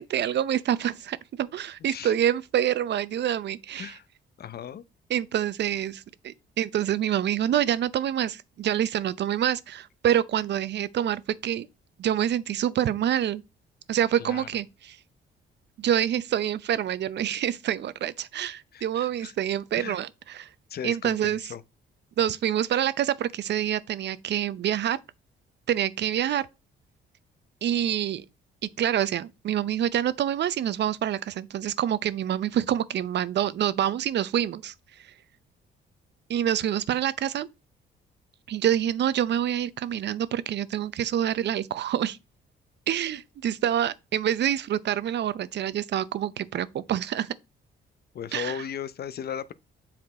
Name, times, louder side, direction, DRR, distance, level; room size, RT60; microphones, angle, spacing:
voice 1, 0.0-3.9 5.1-11.7 12.0-13.4 13.9-15.0 15.8-20.5 20.8-21.4 22.2-25.0 25.7-26.5 27.6-28.2 28.8-34.7 36.3-37.5 38.5-42.2 42.9-47.3 48.3-48.5, right 10 dB, 60° right, 0.6 m, -26 dB
voice 2, 1.8-2.1 3.8-4.1 4.4-4.8 14.2-14.5 18.7-19.3 19.7-20.0 20.7-21.6 48.1-49.5, left 8 dB, 50° left, 0.7 m, -36 dB
7.5 x 4.4 x 4.3 m
cardioid pair, 90°, 20 cm